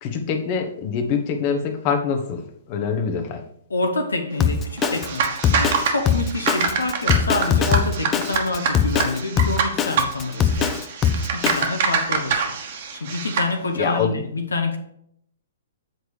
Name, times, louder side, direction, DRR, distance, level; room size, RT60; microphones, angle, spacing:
voice 1, 0.0-2.4 2.7-3.4 13.7-14.1, left 6 dB, 35° left, 1.1 m, -24 dB
voice 2, 3.7-10.8 11.3-12.6 13.0-14.8, left 3 dB, 75° left, 1.0 m, -27 dB
Drum kit, 4.4-11.7, left 7 dB, 20° left, 0.5 m, -21 dB
sound 1, 4.8-13.5, right 5 dB, 50° right, 1.2 m, -26 dB
7.8 x 4.8 x 4.9 m
figure-of-eight pair, 120°, 0 cm